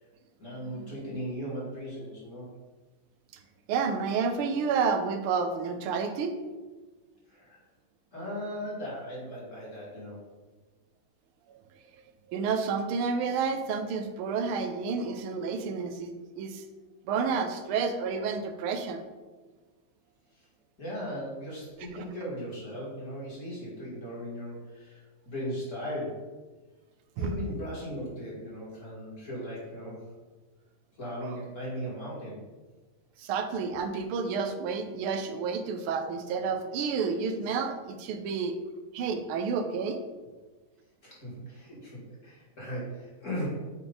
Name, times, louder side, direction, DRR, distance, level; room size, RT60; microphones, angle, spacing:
voice 1, 0.4-2.5 7.3-7.6 8.1-10.3 20.3-20.4 20.8-26.3 27.2-30.1 30.9-32.5 41.0-43.7, equal, 35° left, -6 dB, 2.5 m, -37 dB
voice 2, 3.7-6.4 11.5-11.6 12.3-16.6 17.0-19.0 21.9-22.1 27.2-27.3 31.2-31.4 33.2-38.6 38.9-40.1, right 5 dB, 80° right, 7 dB, 1.5 m, -30 dB
8.5 x 3.2 x 3.9 m, 1.3 s
omnidirectional pair, 2.4 m